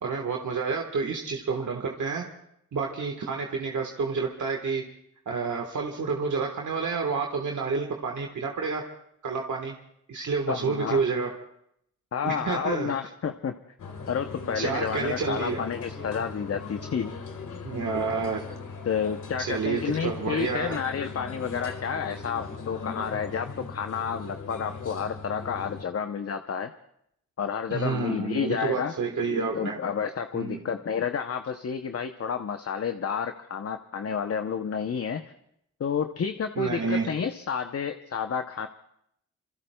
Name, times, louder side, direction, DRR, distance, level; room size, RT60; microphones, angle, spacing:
voice 1, 0.0-2.3 2.7-4.8 5.3-8.8 9.2-9.7 10.1-11.3 12.2-12.9 14.5-15.6 17.6-18.4 19.4-20.8 27.7-29.8 30.3-30.6 36.6-37.1, right 4 dB, 75° right, 1 dB, 1.4 m, -29 dB
voice 2, 10.5-11.0 12.1-13.6 14.1-17.1 18.8-26.7 27.4-28.9 29.5-35.2 35.8-38.7, left 7 dB, 50° left, 7 dB, 0.7 m, -30 dB
sound 1, 13.8-25.8, left 4 dB, 85° left, 1.6 m, -39 dB
27.5 x 23.0 x 2.2 m, 0.74 s
cardioid pair, 60°, 30 cm